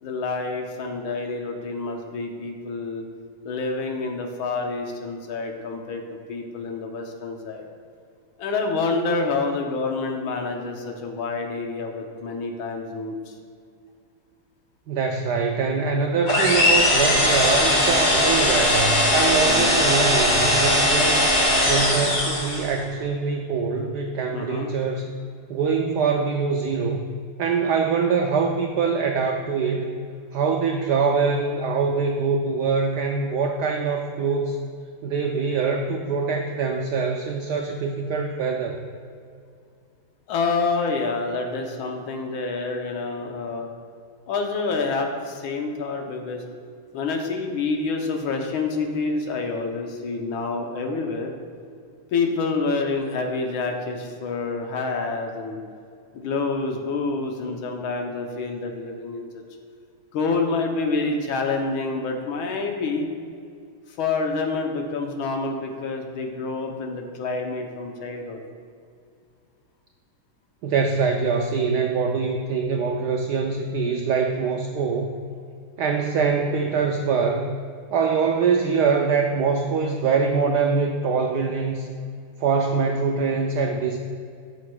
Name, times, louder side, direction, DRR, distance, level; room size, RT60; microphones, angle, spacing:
voice 1, 0.0-3.1 3.4-6.0 6.3-7.6 8.4-13.3 19.4-19.7 24.3-24.7 40.3-43.7 44.3-46.4 46.9-51.3 52.1-55.6 56.1-59.3 60.1-63.1 64.0-68.4, left 3 dB, 75° left, 3 dB, 1.6 m, -27 dB
voice 2, 14.9-21.3 21.7-25.0 25.5-27.0 27.4-29.9 30.3-34.6 35.0-38.8 70.6-75.1 75.8-77.5 77.9-81.9 82.4-84.0, right 5 dB, 90° right, 3 dB, 0.9 m, -23 dB
sound 1, 16.3-22.8, left 1 dB, 40° left, 2.0 m, -19 dB
13.0 x 6.3 x 2.3 m, 2.3 s
omnidirectional pair, 2.3 m